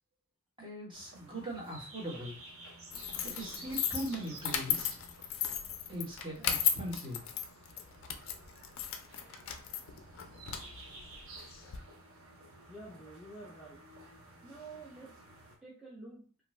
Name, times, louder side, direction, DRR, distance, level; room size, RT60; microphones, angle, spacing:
voice 1, 0.6-2.4 3.2-5.0 5.9-7.2, right 1 dB, 20° right, -4 dB, 1.1 m, -40 dB
sound 1, 0.9-15.6, right 2 dB, 65° right, 0.7 m, -53 dB
sound 2, 2.9-11.8, left 9 dB, 60° left, 0.4 m, -36 dB
voice 2, 12.7-13.8 14.4-15.1 15.6-16.2, right 2 dB, ahead, -8 dB, 0.5 m, -49 dB
2.5 x 2.2 x 3.1 m, 0.39 s
head